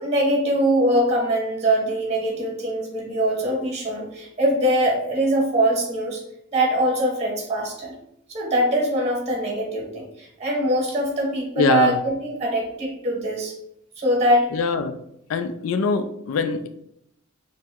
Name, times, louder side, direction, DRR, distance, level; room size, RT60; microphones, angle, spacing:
voice 1, 0.0-6.2 6.5-7.9 8.3-13.5 14.0-14.5, right 1 dB, 35° right, 0 dB, 0.9 m, -22 dB
voice 2, 11.6-12.0 14.5-15.0 15.3-16.7, left 4 dB, 85° left, 9 dB, 0.3 m, -23 dB
2.8 x 2.2 x 3.5 m, 0.77 s
head